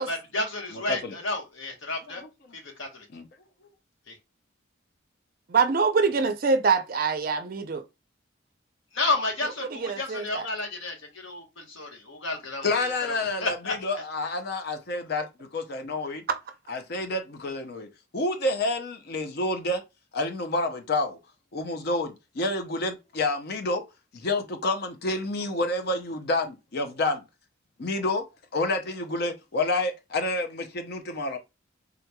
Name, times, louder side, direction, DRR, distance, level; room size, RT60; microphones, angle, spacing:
voice 1, 0.0-2.2 2.5-3.0 4.1-4.2 8.9-12.9 13.4-14.0, left 2 dB, 70° left, 1.1 m, -31 dB
voice 2, 0.7-1.1 2.2-2.3 3.1-3.3 12.6-16.2 16.7-17.9 18.1-19.8 20.1-21.2 21.5-23.8 24.1-27.2 27.8-28.2 28.5-31.4, left 2 dB, 50° left, 0.5 m, -29 dB
voice 3, 5.5-7.8 9.7-10.5, right 4 dB, 45° right, 0.4 m, -24 dB
3.7 x 2.9 x 2.2 m
head